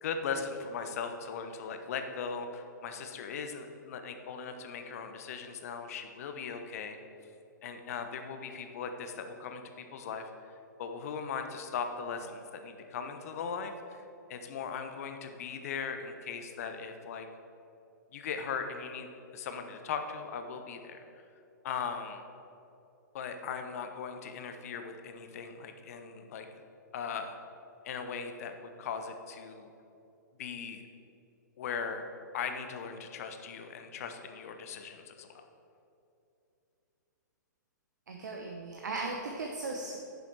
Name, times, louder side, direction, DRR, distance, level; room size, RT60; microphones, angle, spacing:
voice 1, 0.0-7.0 7.6-10.3 10.8-14.0 14.3-17.3 18.1-21.0 21.6-22.2 23.1-26.5 26.9-27.4 27.8-29.7 30.4-30.8 31.6-32.1 32.3-35.5, left 6 dB, 50° left, 6 dB, 1.0 m, -39 dB
voice 2, 38.1-40.0, right 3 dB, 65° right, 0 dB, 1.1 m, -37 dB
10.0 x 6.9 x 4.7 m, 2.7 s
figure-of-eight pair, 115°, 10 cm